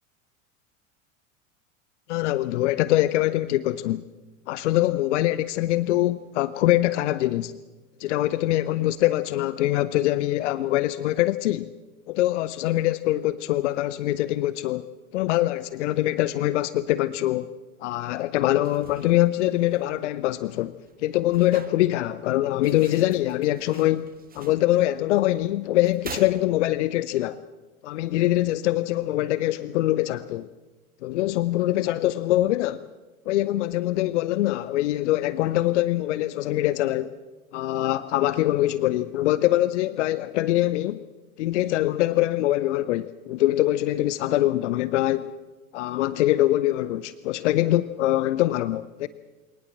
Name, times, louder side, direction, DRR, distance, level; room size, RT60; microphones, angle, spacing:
voice 1, 2.1-4.1 4.5-7.5 8.0-11.7 12.1-14.9 15.1-17.5 17.8-27.4 27.8-30.5 31.0-32.9 33.3-37.2 37.5-41.0 41.4-45.3 45.7-49.1, left 15 dB, 55° left, 0.7 m, -23 dB
sound 1, 18.5-27.0, right 7 dB, 20° right, 1.6 m, -47 dB
23.0 x 19.0 x 7.4 m
figure-of-eight pair, 80°, 42 cm